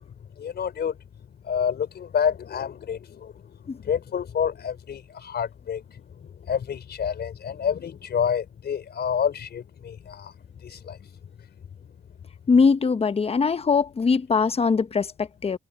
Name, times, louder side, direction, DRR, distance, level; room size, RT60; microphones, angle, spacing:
voice 1, 0.4-1.0 1.4-3.3 3.8-10.3 10.6-11.0, left 7 dB, 55° left, 4.7 m, -28 dB
voice 2, 12.5-15.6, left 5 dB, 30° left, 1.0 m, -21 dB
cardioid pair, 90°, 20 cm